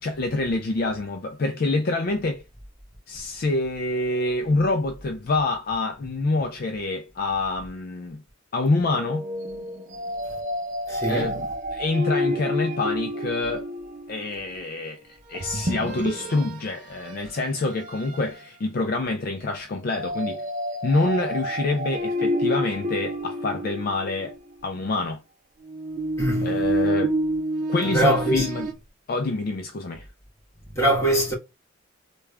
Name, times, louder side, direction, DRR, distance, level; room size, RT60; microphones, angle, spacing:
voice 1, 0.0-2.4 3.1-8.2 8.5-9.3 11.1-13.7 14.1-15.0 15.3-20.4 20.8-24.4 24.6-25.2 26.4-27.1 27.7-28.7 29.1-30.1, left 2 dB, 45° left, 0.3 m, -26 dB
sound 1, 8.9-14.2 15.3-16.6 17.1-17.2 17.8-18.3 19.9-24.4 25.6-28.7, equal, 40° right, 0.6 m, -29 dB
voice 2, 10.9-11.3 26.2-26.6 27.9-28.5 30.7-31.3, right 1 dB, 15° left, 1.4 m, -22 dB
3.5 x 2.3 x 3.2 m
head